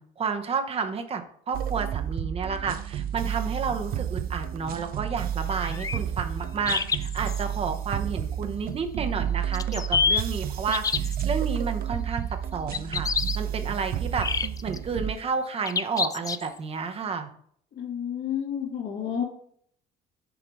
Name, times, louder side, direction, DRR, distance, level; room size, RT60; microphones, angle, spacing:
voice 1, 0.0-12.3 12.5-13.1 13.3-14.3 14.6-17.3, right 5 dB, 35° right, 6 dB, 0.9 m, -31 dB
sound 1, 1.5-15.1, right 10 dB, 60° right, 0.5 m, -31 dB
sound 2, 5.5-6.0 6.7-7.4 9.5-10.2 10.7-11.2 12.7-13.4 14.2-14.8 15.7-16.6, left 5 dB, 20° left, 0.3 m, -27 dB
voice 2, 17.7-19.2, left 8 dB, 70° left, -1 dB, 2.3 m, -30 dB
7.1 x 4.8 x 3.5 m, 0.62 s
cardioid pair, 110°, 17 cm